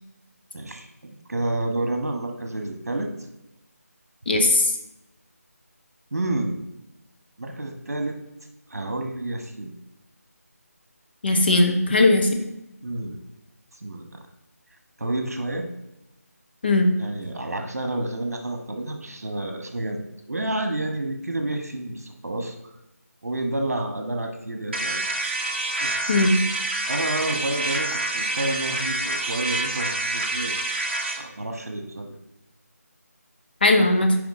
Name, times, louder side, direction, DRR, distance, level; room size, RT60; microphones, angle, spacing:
voice 1, 0.5-3.1 6.1-6.6 7.4-8.2 8.7-9.7 12.8-13.2 13.8-14.1 15.0-15.7 17.0-20.0 20.3-22.5 23.2-25.0 25.8-26.0 26.9-30.6 31.2-32.1, right 2 dB, 65° right, 4 dB, 1.3 m, -29 dB
voice 2, 4.3-4.7 11.2-12.4 16.6-16.9 26.1-26.4 33.6-34.1, left 2 dB, 40° left, 3 dB, 0.8 m, -18 dB
sound 1, 24.7-31.2, right 2 dB, 40° right, 1.0 m, -27 dB
7.9 x 5.1 x 3.7 m, 0.88 s
figure-of-eight pair, 165°, 9 cm